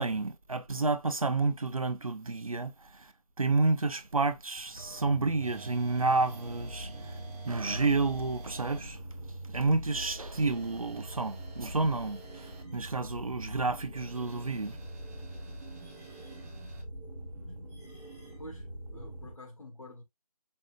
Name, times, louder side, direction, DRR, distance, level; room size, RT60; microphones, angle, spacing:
voice 1, 0.0-3.1 3.4-7.2 7.5-9.0 9.5-14.8, right 3 dB, 60° right, 0.8 m, -30 dB
sound 1, 4.7-19.3, right 1 dB, ahead, 1.0 m, -44 dB
sound 2, 5.4-8.8 9.9-12.6 13.9-16.8, right 3 dB, 25° right, 1.3 m, -53 dB
voice 2, 18.9-20.0, left 1 dB, 55° left, 1.8 m, -47 dB
5.4 x 3.7 x 2.4 m
figure-of-eight pair, 160°, 20 cm